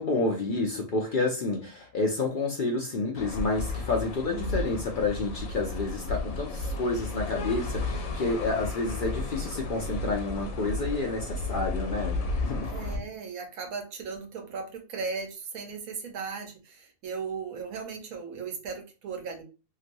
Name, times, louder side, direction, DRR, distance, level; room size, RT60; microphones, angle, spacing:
voice 1, 0.0-12.7, left 3 dB, 55° left, 0 dB, 0.6 m, -29 dB
sound 1, 3.2-13.0, left 2 dB, 85° left, 1.1 m, -33 dB
voice 2, 12.6-19.4, right 5 dB, 90° right, 4 dB, 1.3 m, -37 dB
2.9 x 2.9 x 2.5 m, 0.32 s
omnidirectional pair, 1.4 m